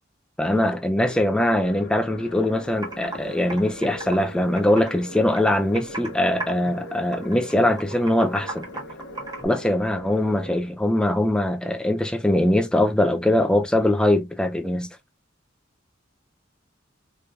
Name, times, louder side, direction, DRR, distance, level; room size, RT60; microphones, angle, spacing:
voice 1, 0.4-8.6 9.4-14.9, left 1 dB, 5° left, 0.4 m, -22 dB
sound 1, 1.1-10.6, left 1 dB, 85° left, 1.0 m, -40 dB
Computer keyboard, 2.4-2.5 2.8-3.2 3.5-5.0 5.4-6.1 6.4-6.8 7.1-9.5, right 2 dB, 20° right, 1.4 m, -35 dB
4.5 x 2.7 x 2.2 m
head